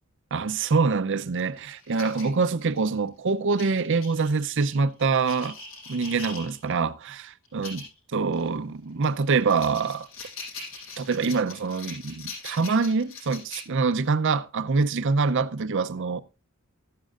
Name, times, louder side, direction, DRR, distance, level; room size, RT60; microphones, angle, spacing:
voice 1, 0.3-5.6 5.9-7.8 8.1-10.1 11.0-16.2, right 4 dB, 60° right, 0.6 m, -25 dB
sound 1, 1.4-3.0 3.6-6.8 7.4-7.9 8.3-8.5 9.0-14.1, left 3 dB, 85° left, 6.5 m, -42 dB
14.0 x 11.5 x 2.5 m
head